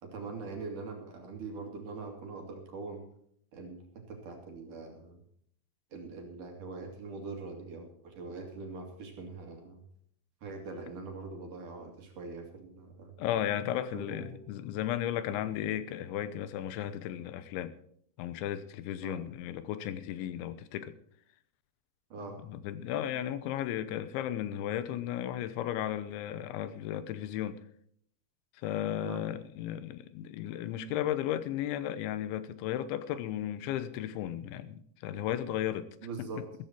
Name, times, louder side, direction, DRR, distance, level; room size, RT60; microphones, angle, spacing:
voice 1, 0.0-3.1 3.5-5.2 5.9-9.8 10.4-13.1 13.9-14.4 19.0-19.2 22.1-22.4 29.0-29.2 36.0-36.4, right 3 dB, 50° right, 3.5 m, -42 dB
voice 2, 13.2-17.7 18.2-20.9 22.5-27.6 28.6-35.9 36.2-36.4, left 11 dB, 85° left, 3.3 m, -35 dB
14.5 x 14.5 x 4.5 m
omnidirectional pair, 5.2 m